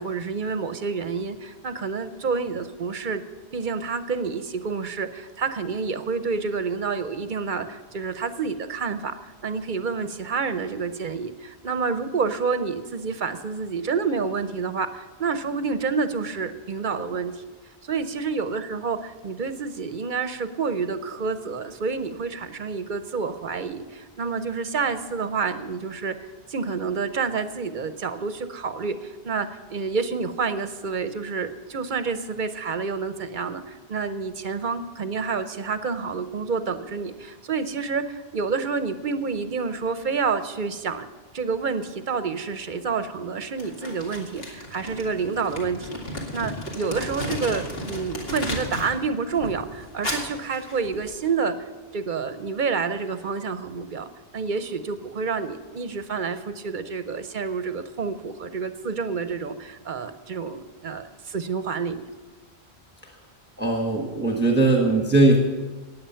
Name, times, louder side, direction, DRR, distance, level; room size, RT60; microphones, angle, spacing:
voice 1, 0.0-3.2 3.5-17.4 17.8-26.2 26.5-41.1 41.3-62.1, right 5 dB, 50° right, 10 dB, 0.8 m, -28 dB
Crumpling crinkling, 43.6-49.0 49.3-51.3, left 1 dB, 65° left, 2.5 m, -34 dB
voice 2, 63.6-65.4, right 2 dB, 10° right, 1 dB, 1.2 m, -20 dB
15.5 x 9.6 x 5.7 m, 1.3 s
omnidirectional pair, 1.1 m